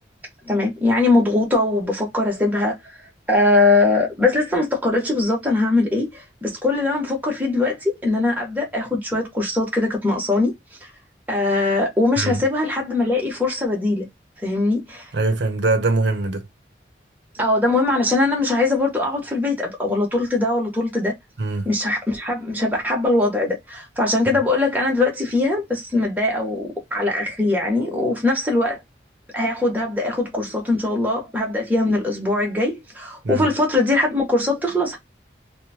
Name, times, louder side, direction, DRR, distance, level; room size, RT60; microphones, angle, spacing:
voice 1, 0.4-3.0 3.3-10.5 11.3-14.0 14.4-15.1 17.3-21.1 21.6-28.8 29.3-35.0, left 2 dB, 10° right, 1.0 m, -21 dB
voice 2, 15.1-16.5 21.4-21.7 33.2-33.5, right 2 dB, 85° right, 0.6 m, -22 dB
2.8 x 2.1 x 2.8 m
head